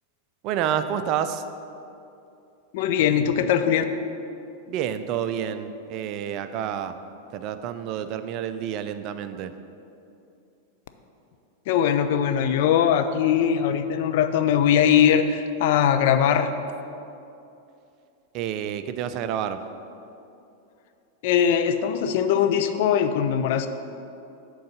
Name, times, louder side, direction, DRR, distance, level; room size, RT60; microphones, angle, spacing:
voice 1, 0.4-1.4 4.7-7.0 7.3-9.5 18.3-19.6, right 9 dB, 40° right, 11 dB, 0.4 m, -29 dB
voice 2, 2.7-3.8 11.7-16.5 21.2-23.7, left 9 dB, 50° left, 9 dB, 0.4 m, -21 dB
7.7 x 3.9 x 6.4 m, 2.7 s
figure-of-eight pair, 90°, 0 cm